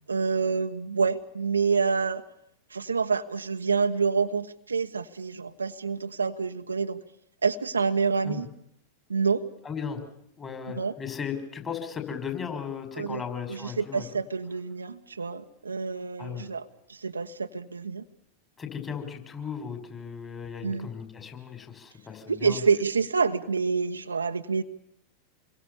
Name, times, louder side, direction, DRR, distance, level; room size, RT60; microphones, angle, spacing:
voice 1, 0.1-2.2 2.7-7.0 7.4-8.5 9.1-9.4 10.8-10.9 13.0-13.2 13.5-18.0 20.6-20.9 22.3-24.6, right 5 dB, 75° right, 6 dB, 1.3 m, -27 dB
voice 2, 9.6-10.0 10.4-14.1 16.2-16.5 18.6-22.6, left 7 dB, 20° left, 6 dB, 6.0 m, -36 dB
28.5 x 22.5 x 7.1 m, 0.75 s
figure-of-eight pair, 90°, 0 cm